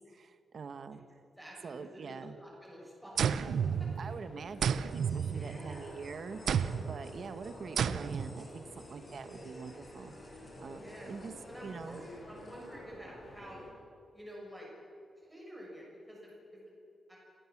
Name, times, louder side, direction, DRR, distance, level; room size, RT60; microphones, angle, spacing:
voice 1, 0.1-1.0 1.6-2.4 4.0-10.1 10.6-11.3 11.6-12.1, right 5 dB, 50° right, 10 dB, 1.2 m, -45 dB
voice 2, 1.4-2.1 2.4-3.5 3.8-3.9 5.1-6.0 7.1-7.5 10.6-13.7 14.1-14.7 15.3-16.6 17.1-17.2, equal, 5° right, -4 dB, 6.5 m, -50 dB
sound 1, 3.1-13.7, left 1 dB, 50° left, 6.2 m, -50 dB
sound 2, 3.2-4.2 4.6-5.9 6.5-7.0 7.8-8.4, right 7 dB, 75° right, 0.7 m, -31 dB
sound 3, 4.9-12.7, left 2 dB, 20° left, 4.1 m, -62 dB
27.0 x 16.0 x 7.3 m, 2.6 s
wide cardioid pair, 175°, 0 cm